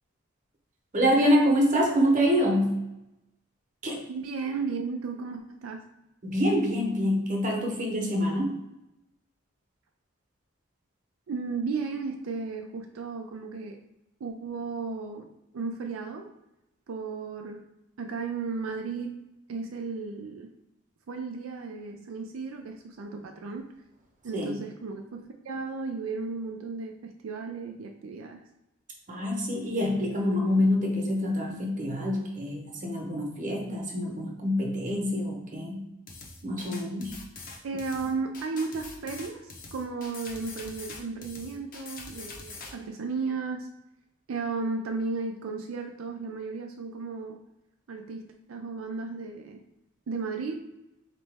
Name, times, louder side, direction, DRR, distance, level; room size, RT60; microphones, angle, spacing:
voice 1, 0.9-2.8 3.8-4.0 6.2-8.6 24.3-24.5 29.1-35.8 36.4-37.1, equal, 40° right, 0 dB, 1.0 m, -26 dB
voice 2, 4.1-5.9 11.3-13.8 14.2-16.3 16.9-17.6 18.0-19.2 19.5-20.5 21.1-23.7 24.2-28.4 37.6-43.7 44.3-47.4 47.9-49.6 50.1-50.7, right 4 dB, 85° right, 3 dB, 0.4 m, -34 dB
sound 1, 36.1-42.7, left 3 dB, 45° left, 0.8 m, -43 dB
4.0 x 2.9 x 3.5 m, 0.91 s
head